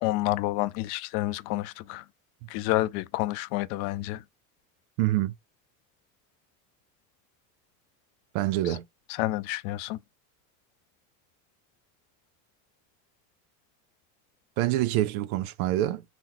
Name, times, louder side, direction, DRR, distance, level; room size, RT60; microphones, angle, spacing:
voice 1, 0.0-2.0 2.5-4.2 8.7-8.8 9.2-10.0, left 17 dB, 70° left, 0.5 m, -29 dB
voice 2, 5.0-5.3 8.3-8.9 14.6-16.0, right 14 dB, 90° right, 0.5 m, -26 dB
2.9 x 2.0 x 3.8 m
cardioid pair, 155°, 40 cm